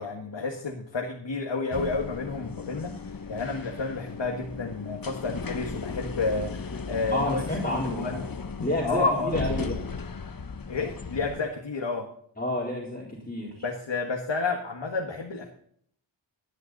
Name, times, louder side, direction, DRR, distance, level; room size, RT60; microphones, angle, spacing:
voice 1, 0.0-7.4 7.9-8.2 8.8-9.4 10.7-12.1 13.6-15.5, left 3 dB, 60° left, 1 dB, 1.8 m, -30 dB
sound 1, 1.7-11.4, left 5 dB, 45° left, 1.1 m, -36 dB
voice 2, 7.1-8.1 8.6-9.8 12.4-13.6, left 1 dB, 20° left, -4 dB, 3.7 m, -29 dB
17.5 x 9.6 x 4.1 m, 0.64 s
wide cardioid pair, 60°, 49 cm